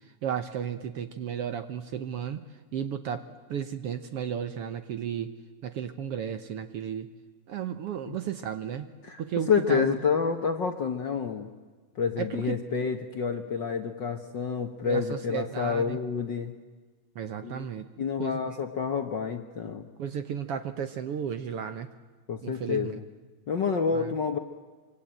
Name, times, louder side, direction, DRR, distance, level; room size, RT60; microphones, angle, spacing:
voice 1, 0.2-2.4 2.7-3.2 3.5-5.3 5.6-7.1 7.5-8.9 9.2-9.9 12.2-12.3 14.8-16.0 17.2-17.8 18.2-18.4 20.0-21.9 22.4-23.0 23.9-24.0, right 8 dB, 65° right, 10 dB, 1.6 m, -33 dB
voice 2, 9.5-11.5 11.9-16.6 17.4-17.7 18.0-19.8 22.3-23.1 23.5-24.4, left 6 dB, 55° left, 6 dB, 1.4 m, -28 dB
25.0 x 25.0 x 9.0 m, 1.4 s
omnidirectional pair, 3.4 m